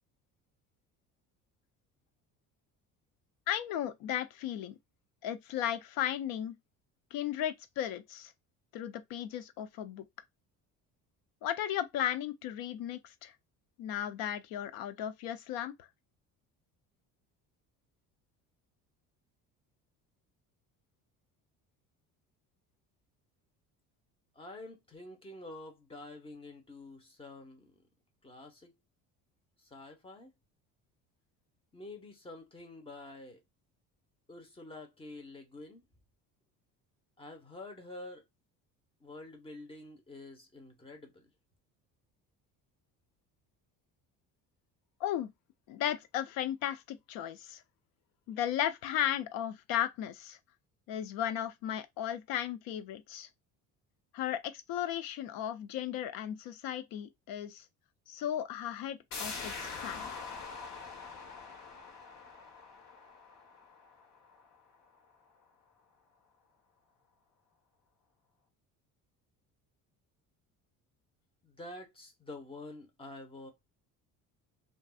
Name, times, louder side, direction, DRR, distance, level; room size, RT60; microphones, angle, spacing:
voice 1, 3.5-4.8 5.2-6.5 7.1-8.3 8.7-10.1 11.4-13.3 13.8-15.9 45.0-45.3 45.7-47.6 48.3-50.4 50.9-53.3 54.1-57.7 58.1-60.1, left 11 dB, 75° left, 0.6 m, -35 dB
voice 2, 24.3-27.7 28.2-28.7 29.6-30.3 31.7-33.4 34.3-35.8 37.2-38.2 39.0-41.3 71.4-73.5, left 2 dB, 15° left, 1.1 m, -48 dB
sound 1, 59.1-64.6 64.9-65.0, left 4 dB, 55° left, 1.3 m, -44 dB
3.4 x 2.7 x 2.4 m
cardioid pair, 110°, 34 cm